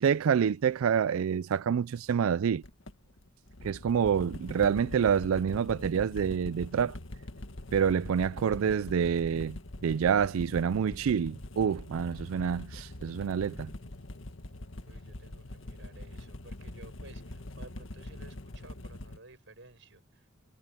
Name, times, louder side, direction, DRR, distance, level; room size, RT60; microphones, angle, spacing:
voice 1, 0.0-2.6 3.6-7.0 7.7-13.7, right 7 dB, 85° right, 0.4 m, -27 dB
sound 1, 2.6-19.2, left 1 dB, 70° left, 1.7 m, -43 dB
voice 2, 14.8-20.3, right 2 dB, 65° right, 7.7 m, -54 dB
head